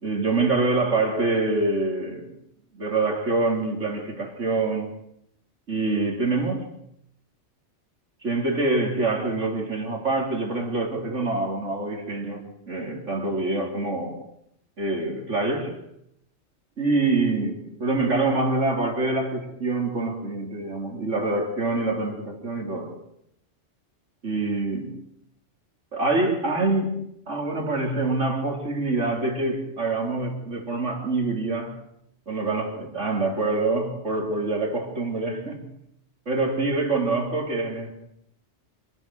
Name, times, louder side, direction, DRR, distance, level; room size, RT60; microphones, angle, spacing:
voice 1, 0.0-2.3 2.8-4.9 5.7-6.7 8.2-14.2 14.8-15.8 16.8-23.0 24.2-25.1 25.9-31.8 32.3-35.7 36.3-37.9, right 3 dB, 85° right, 4.0 m, -25 dB
26.5 x 12.0 x 9.3 m
omnidirectional pair, 1.2 m